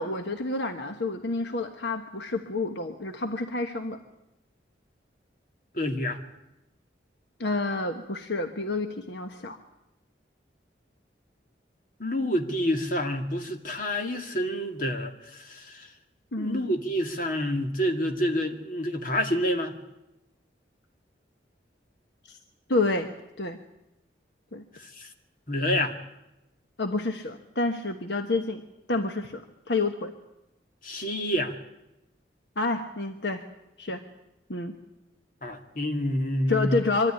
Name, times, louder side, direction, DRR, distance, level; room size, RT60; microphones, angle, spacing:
voice 1, 0.0-4.0 7.4-9.6 16.3-16.7 22.3-22.4 22.7-23.1 23.4-23.6 24.5-24.6 26.8-28.6 28.9-30.1 32.6-33.5 33.8-34.0 34.5-34.8 36.5-37.1, left 3 dB, 70° left, 6 dB, 1.3 m, -29 dB
voice 2, 5.7-6.2 12.0-15.9 16.4-19.8 24.7-25.1 25.5-25.9 30.8-31.5 35.4-36.8, equal, 45° left, 4 dB, 2.2 m, -28 dB
23.5 x 13.5 x 10.0 m, 0.92 s
head